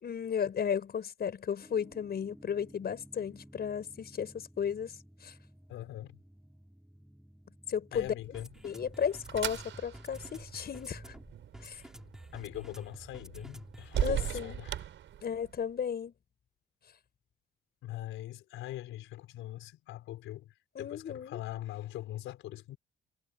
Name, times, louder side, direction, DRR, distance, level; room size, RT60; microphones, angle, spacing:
voice 1, 0.0-4.9 5.2-5.3 7.7-8.1 8.6-11.1 11.6-11.8 14.0-14.7 15.2-16.1 20.8-21.4, left 7 dB, 55° left, 5.7 m, -34 dB
sound 1, 1.6-14.6, equal, 5° right, 7.1 m, -52 dB
voice 2, 5.7-6.2 7.9-8.5 12.3-14.8 17.8-20.5 20.8-22.8, left 14 dB, 90° left, 4.9 m, -42 dB
sound 2, 8.3-15.7, right 11 dB, 70° right, 6.5 m, -39 dB
cardioid pair, 90°, 20 cm